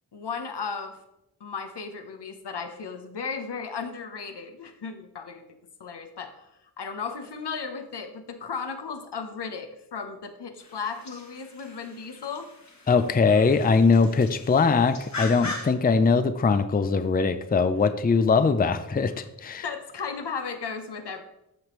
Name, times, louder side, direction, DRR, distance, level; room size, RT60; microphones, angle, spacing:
voice 1, 0.1-1.0 1.4-6.5 6.8-12.5 19.6-21.2, left 5 dB, 80° left, 7 dB, 0.9 m, -35 dB
sound 1, 10.6-15.7, left 2 dB, 45° left, 1.4 m, -40 dB
voice 2, 12.9-19.6, left 4 dB, 25° left, 11 dB, 0.4 m, -21 dB
13.5 x 5.1 x 3.1 m, 0.88 s
wide cardioid pair, 90°, 40 cm